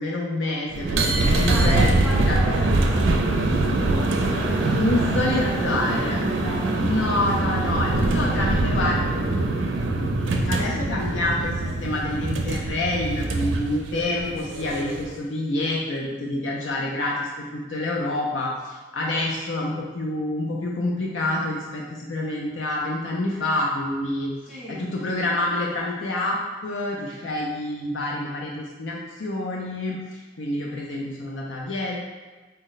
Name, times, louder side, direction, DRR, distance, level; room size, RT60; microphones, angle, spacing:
voice 1, 0.0-1.8 2.3-2.4 4.7-6.2 6.8-9.0 10.4-26.4 26.6-32.0, left 2 dB, 90° left, -2 dB, 0.5 m, -27 dB
sound 1, 0.7-15.1, right 2 dB, 90° right, 0.4 m, -23 dB
voice 2, 1.4-7.5 8.0-9.2 10.4-10.9 24.5-24.9, equal, 5° right, -9 dB, 0.6 m, -36 dB
4.0 x 2.1 x 3.9 m, 1.3 s
head